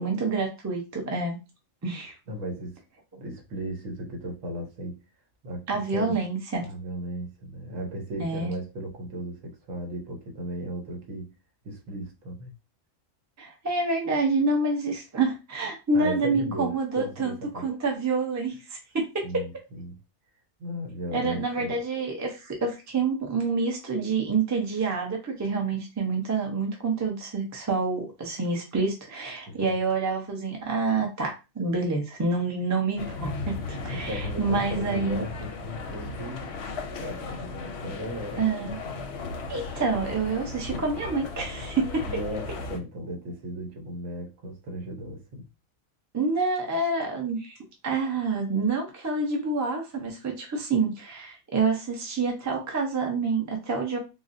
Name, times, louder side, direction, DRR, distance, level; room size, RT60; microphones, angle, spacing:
voice 1, 0.0-1.4 1.8-2.1 5.7-6.6 8.2-8.5 13.4-19.3 21.1-35.2 38.4-38.8 39.5-42.1 46.1-47.6 47.8-54.0, right 3 dB, 20° right, 0.5 m, -27 dB
voice 2, 2.3-2.8 3.2-5.0 5.4-6.2 6.6-11.3 11.6-12.5 15.9-17.7 19.2-20.0 20.6-21.8 29.5-29.7 33.9-36.4 37.0-39.2 42.0-45.5, equal, 80° right, 1.2 m, -36 dB
sound 1, 33.0-42.8, left 3 dB, 65° left, 0.8 m, -36 dB
4.0 x 2.1 x 2.5 m
omnidirectional pair, 1.3 m